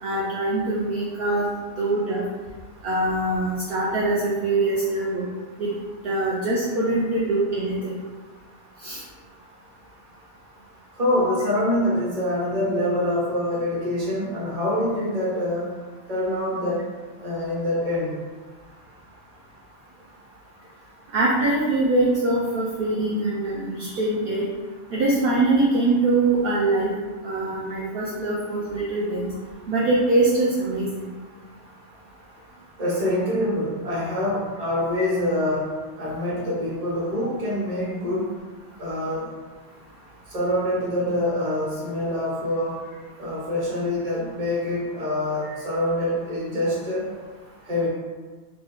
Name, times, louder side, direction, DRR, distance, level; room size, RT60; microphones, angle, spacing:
voice 1, 0.0-1.5 1.8-2.2 2.8-5.3 5.6-5.7 6.0-7.9 8.8-9.0 21.1-24.4 24.9-26.9 27.2-29.3 29.7-31.0 45.4-45.5, right 2 dB, 60° right, -6 dB, 0.8 m, -23 dB
voice 2, 10.9-15.8 16.1-16.9 17.2-18.2 32.8-38.3 38.8-39.3 40.3-42.8 43.2-47.1 47.6-47.9, left 1 dB, 35° right, -6 dB, 1.0 m, -25 dB
3.2 x 2.6 x 3.5 m, 1.4 s
omnidirectional pair, 1.2 m